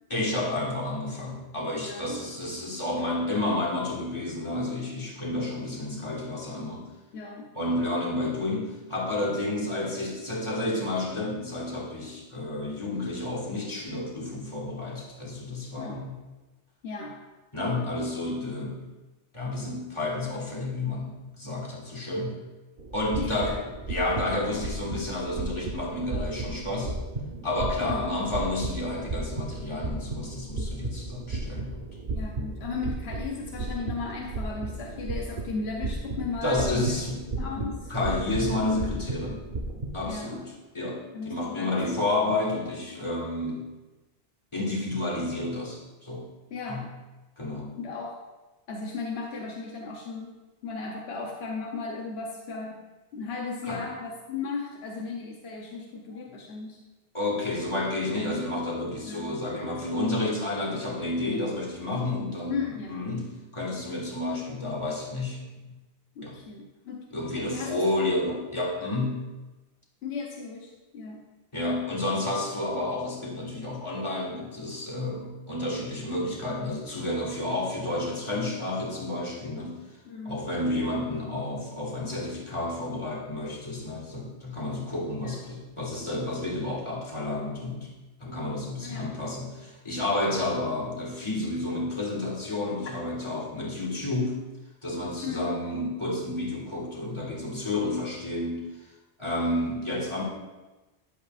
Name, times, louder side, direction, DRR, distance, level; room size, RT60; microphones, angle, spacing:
voice 1, 0.1-6.9 7.5-16.1 17.5-18.8 19.3-22.4 22.9-23.6 23.9-27.0 27.4-31.8 36.4-37.3 37.6-39.4 39.9-41.0 41.3-43.7 44.5-46.3 46.7-46.8 47.4-47.7 53.7-53.8 57.1-65.4 66.2-66.4 67.1-69.3 71.5-79.8 80.3-87.9 88.2-94.5 94.8-98.6 99.2-100.2, left 2 dB, 30° left, -3 dB, 1.8 m, -30 dB
voice 2, 1.7-2.2 7.1-7.5 15.8-16.1 16.8-17.2 23.2-23.6 27.8-28.0 32.1-37.0 37.4-37.9 40.0-40.4 41.1-42.0 46.5-46.9 47.7-48.2 48.7-52.8 53.1-56.8 59.0-59.4 62.5-63.0 66.1-67.1 67.4-67.8 70.0-71.3 80.0-80.4 85.2-85.4 88.8-89.1 95.2-95.5, left 4 dB, 80° left, -1 dB, 1.1 m, -36 dB
sound 1, 22.8-40.1, right 2 dB, 50° right, 1.0 m, -34 dB
11.0 x 8.0 x 2.5 m, 1.1 s
omnidirectional pair, 1.1 m